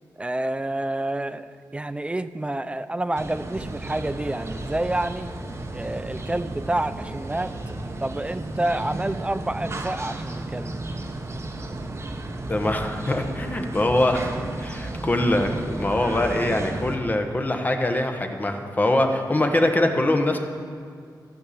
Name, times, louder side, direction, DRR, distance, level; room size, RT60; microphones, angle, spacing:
voice 1, 0.2-5.3 5.7-10.8, right 1 dB, 15° right, 11 dB, 0.5 m, -28 dB
sound 1, 3.1-17.0, right 2 dB, 35° right, 1.1 m, -33 dB
voice 2, 12.5-20.4, left 1 dB, 25° left, 4 dB, 1.2 m, -23 dB
15.5 x 5.9 x 8.5 m, 2.2 s
wide cardioid pair, 115°, 8 cm